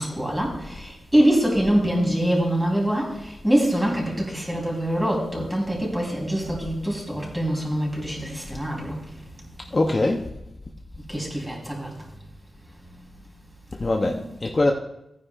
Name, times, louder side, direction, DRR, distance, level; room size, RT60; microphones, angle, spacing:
voice 1, 0.0-9.0 11.1-11.9 14.0-14.2, right 1 dB, 10° right, -2 dB, 3.5 m, -24 dB
voice 2, 9.7-10.3 13.7-14.7, left 2 dB, 35° left, 2 dB, 0.7 m, -22 dB
15.5 x 9.7 x 2.5 m, 0.85 s
wide cardioid pair, 105°, 0 cm